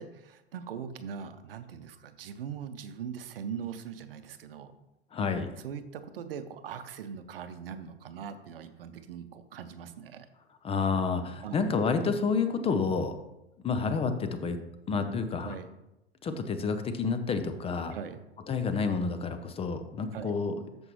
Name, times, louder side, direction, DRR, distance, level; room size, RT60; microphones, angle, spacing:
voice 1, 0.0-4.7 5.6-10.3 11.4-11.5 15.4-15.7 17.9-18.2 20.1-20.3, right 7 dB, 60° right, 10 dB, 0.8 m, -41 dB
voice 2, 5.1-5.5 10.6-13.2 13.6-14.6 14.9-15.5 16.2-18.0 18.5-20.5, left 5 dB, 20° left, 9 dB, 0.6 m, -29 dB
13.5 x 5.3 x 3.1 m, 0.91 s
figure-of-eight pair, 90°, 32 cm